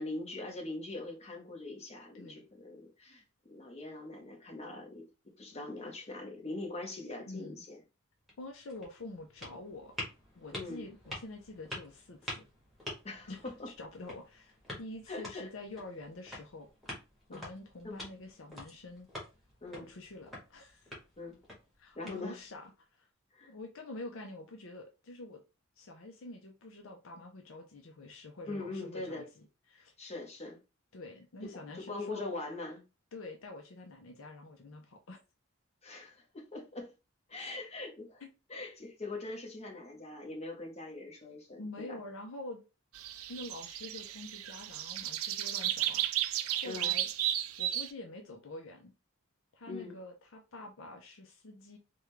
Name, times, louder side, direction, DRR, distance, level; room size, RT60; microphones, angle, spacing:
voice 1, 0.0-3.2 3.5-7.8 10.5-10.9 13.0-13.7 15.1-15.5 17.3-17.5 17.8-18.0 19.6-19.9 21.2-21.4 21.9-22.4 23.3-23.5 28.5-29.3 30.0-30.6 31.7-32.8 35.8-36.9 37.3-38.2 38.5-42.0 46.6-46.9 49.7-50.0, left 2 dB, 30° left, 1.0 m, -42 dB
voice 2, 7.3-7.6 8.4-9.9 10.4-12.4 13.3-16.7 17.3-19.1 19.7-20.9 21.8-23.1 23.5-25.4 25.8-29.9 30.9-32.3 33.1-35.2 37.4-37.7 38.2-38.3 41.6-42.6 43.3-46.1 46.5-47.1 47.6-48.9 49.5-51.8, left 2 dB, 65° left, 0.5 m, -47 dB
sound 1, 8.1-22.7, left 1 dB, ahead, 1.3 m, -48 dB
sound 2, 42.9-47.9, right 12 dB, 70° right, 0.3 m, -34 dB
3.5 x 2.2 x 3.1 m
head